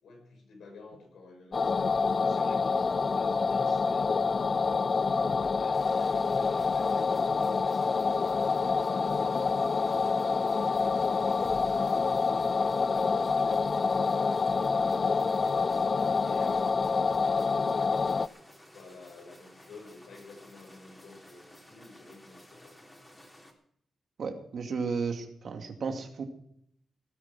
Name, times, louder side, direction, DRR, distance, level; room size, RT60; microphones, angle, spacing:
voice 1, 0.0-9.4 10.0-12.2 12.5-17.3 17.7-18.2 18.7-23.2, left 3 dB, 85° left, 2 dB, 6.3 m, -51 dB
sound 1, 1.5-18.3, left 4 dB, 45° left, 0.5 m, -27 dB
sound 2, 5.7-23.5, left 1 dB, 15° left, 3.7 m, -54 dB
voice 2, 24.2-26.2, right 5 dB, 65° right, 5 dB, 2.5 m, -33 dB
18.5 x 9.9 x 6.0 m, 0.68 s
cardioid pair, 95°, 0 cm